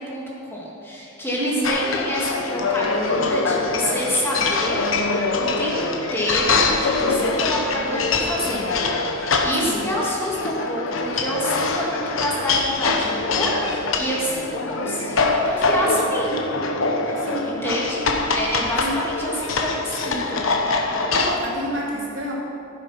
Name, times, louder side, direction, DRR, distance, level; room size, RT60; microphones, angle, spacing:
voice 1, 0.0-16.4 17.0-17.2 17.4-18.1 18.3-20.4, equal, 10° left, -5 dB, 2.2 m, -27 dB
voice 2, 1.4-1.7 9.6-9.8 17.2-17.5 18.8-19.0 21.1-22.3, left 1 dB, 70° right, -4 dB, 2.7 m, -29 dB
sound 1, 1.6-21.4, left 3 dB, 80° left, 1.1 m, -24 dB
14.0 x 7.6 x 5.8 m, 2.7 s
head